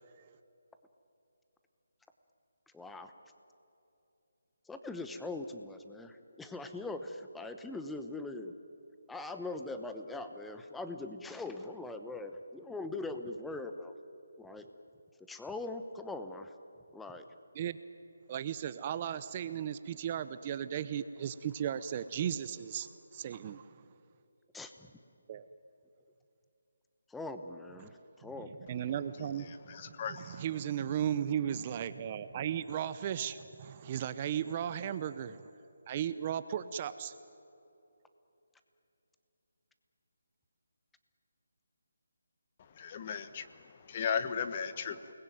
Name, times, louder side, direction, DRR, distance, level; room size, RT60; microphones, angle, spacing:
voice 1, 2.7-3.1 4.7-8.5 9.1-13.9 14.4-14.7 15.3-16.5 16.9-17.2 24.5-24.7 27.1-28.5 44.9-45.0, left 2 dB, 5° left, 7 dB, 0.9 m, -41 dB
voice 2, 18.3-23.7 25.3-25.5 27.8-27.9 28.7-35.5 35.9-37.1, right 9 dB, 25° right, 13 dB, 0.7 m, -36 dB
voice 3, 29.7-30.4 42.8-43.5 43.9-45.0, left 7 dB, 30° left, 11 dB, 1.1 m, -35 dB
29.0 x 20.5 x 9.3 m, 2.9 s
hypercardioid pair, 170°, 0 cm